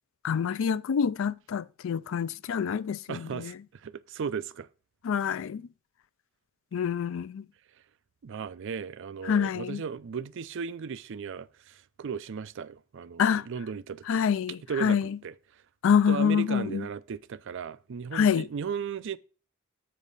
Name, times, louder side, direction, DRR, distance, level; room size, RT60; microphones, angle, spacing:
voice 1, 0.2-3.5 5.0-5.6 6.7-7.5 9.3-9.8 13.2-13.4 14.1-15.2 15.8-16.9 18.1-18.5, left 7 dB, 65° left, 0.4 m, -26 dB
voice 2, 3.1-3.5 3.8-4.7 8.2-14.2 14.7-15.3 16.1-19.2, right 6 dB, 60° right, 0.4 m, -36 dB
8.3 x 5.2 x 4.0 m
head